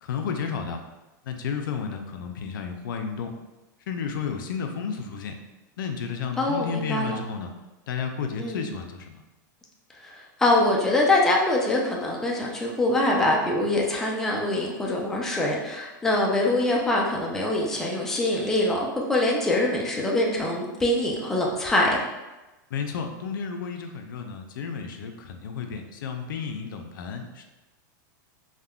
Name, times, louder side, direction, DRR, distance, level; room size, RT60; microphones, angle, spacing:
voice 1, 0.0-0.8 1.2-3.3 3.9-5.3 5.8-7.5 7.9-9.2 22.7-27.4, left 6 dB, 90° left, 5 dB, 0.4 m, -32 dB
voice 2, 6.4-7.2 8.4-8.7 9.9-22.0, left 1 dB, 5° left, -2 dB, 0.3 m, -24 dB
3.5 x 2.1 x 2.2 m, 1.1 s
supercardioid pair, 150°, 11 cm